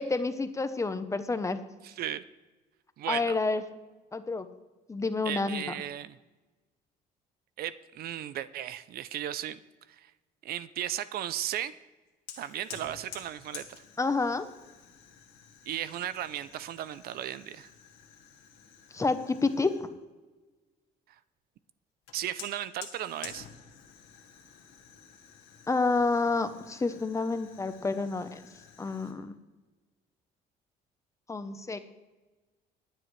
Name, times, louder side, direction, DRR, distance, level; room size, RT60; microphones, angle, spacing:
voice 1, 0.0-1.6 3.1-3.6 4.1-4.5 4.9-5.6 14.0-14.5 18.9-19.9 25.7-28.4 28.8-29.3 31.3-31.8, left 3 dB, 20° left, 10 dB, 0.8 m, -29 dB
voice 2, 1.8-2.2 3.0-3.4 5.2-6.2 7.6-9.6 10.0-10.1 10.4-11.7 12.4-13.8 15.7-17.7 22.1-23.5, right 11 dB, 65° right, 15 dB, 0.5 m, -35 dB
Fire, 12.3-19.9 22.1-29.1, left 8 dB, 85° left, 2.0 m, -50 dB
21.5 x 7.7 x 3.2 m, 1.2 s
cardioid pair, 110°, 17 cm